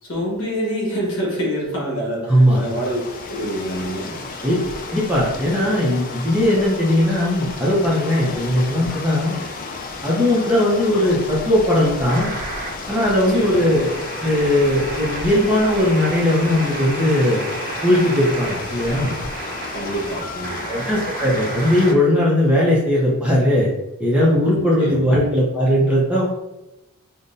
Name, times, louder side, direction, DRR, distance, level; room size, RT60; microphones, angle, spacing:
voice 1, 0.0-3.0 3.2-4.1 13.3-13.6 19.7-20.7 24.8-25.0, equal, 60° left, -3 dB, 1.3 m, -26 dB
voice 2, 2.3-2.6 4.4-4.6 4.9-9.4 10.0-12.3 12.9-17.4 17.8-19.1 20.7-23.7 24.0-26.2, left 1 dB, 5° right, -6 dB, 0.6 m, -18 dB
sound 1, 2.4-21.9, left 3 dB, 40° left, 0.3 m, -33 dB
sound 2, 12.1-21.9, right 2 dB, 45° right, 0.8 m, -32 dB
5.3 x 2.1 x 2.6 m, 0.95 s
head